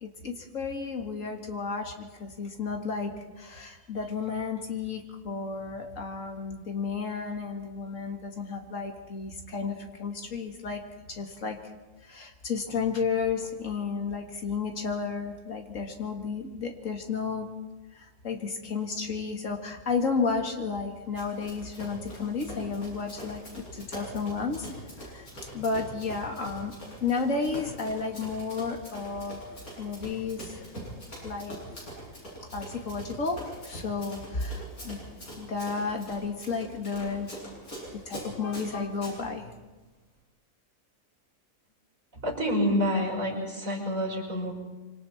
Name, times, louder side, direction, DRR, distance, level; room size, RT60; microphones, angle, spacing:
voice 1, 0.0-3.1 3.4-10.8 11.1-11.6 12.0-17.5 17.9-26.8 27.0-29.4 29.8-30.6 31.2-31.6 32.5-35.1 35.4-37.3 38.1-39.5, left 4 dB, 65° left, 3 dB, 2.5 m, -32 dB
Run, 21.2-39.2, right 1 dB, 90° left, 8.6 m, -43 dB
voice 2, 42.2-44.5, equal, 70° right, -2 dB, 6.0 m, -28 dB
25.5 x 25.5 x 4.4 m, 1.2 s
omnidirectional pair, 1.5 m